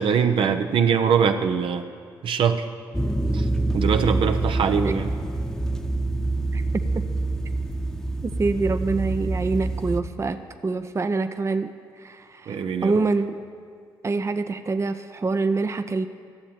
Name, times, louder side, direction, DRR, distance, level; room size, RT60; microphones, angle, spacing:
voice 1, 0.0-1.9 2.2-2.7 3.3-5.1 12.5-12.9, right 7 dB, 65° right, 7 dB, 0.7 m, -22 dB
sound 1, 2.9-10.0, right 2 dB, 5° left, 0.9 m, -26 dB
voice 2, 8.2-13.4 14.0-16.1, right 3 dB, 30° right, 9 dB, 0.6 m, -26 dB
12.5 x 7.4 x 8.7 m, 2.1 s
hypercardioid pair, 45°, 10 cm